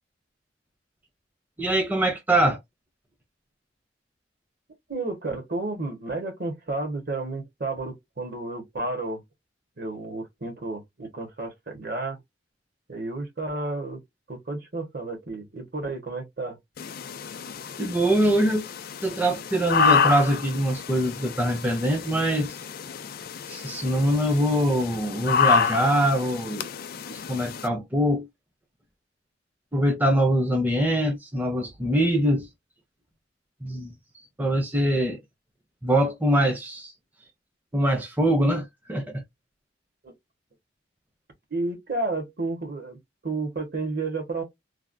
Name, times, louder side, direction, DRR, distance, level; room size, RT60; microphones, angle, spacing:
voice 1, 1.6-2.6 17.8-18.7 19.0-22.5 23.5-26.7 27.1-28.3 29.7-32.5 33.6-33.9 34.4-35.2 35.8-36.9 37.7-39.2, right 1 dB, 10° right, 0.6 m, -23 dB
voice 2, 4.9-9.2 9.8-12.2 12.9-14.0 14.3-16.6 40.0-40.1 41.5-44.4, right 2 dB, 55° right, 1.3 m, -31 dB
sound 1, 16.8-27.7, left 6 dB, 50° left, 0.4 m, -28 dB
3.3 x 2.2 x 2.5 m
head